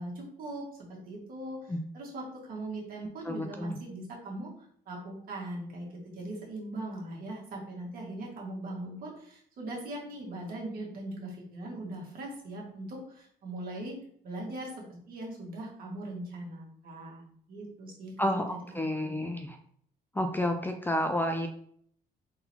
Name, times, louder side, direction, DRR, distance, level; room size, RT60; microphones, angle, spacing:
voice 1, 0.0-14.0 14.2-19.3, right 1 dB, 60° right, -3 dB, 1.8 m, -40 dB
voice 2, 3.3-3.8 18.2-19.6 20.2-21.5, left 1 dB, 10° left, 5 dB, 0.4 m, -30 dB
3.9 x 3.8 x 2.8 m, 0.62 s
cardioid pair, 110°, 17 cm